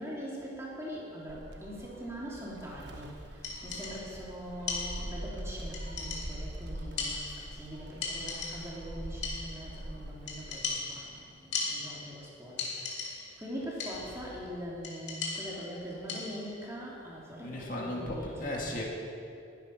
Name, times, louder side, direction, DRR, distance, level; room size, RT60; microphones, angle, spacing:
voice 1, 0.0-18.6, equal, 15° right, -5 dB, 2.9 m, -42 dB
Gull seagull, 1.3-10.6, right 1 dB, 65° right, 1.3 m, -43 dB
sound 1, 3.4-4.2 4.7-5.4 5.7-6.6 7.0-7.7 8.0-8.9 9.2-9.8 10.3-12.2 12.6-13.4 13.8-14.3 14.8-16.6, left 4 dB, 75° left, 2.6 m, -38 dB
voice 2, 17.4-18.8, left 1 dB, 45° left, -1 dB, 2.1 m, -35 dB
20.5 x 9.3 x 5.8 m, 2.6 s
head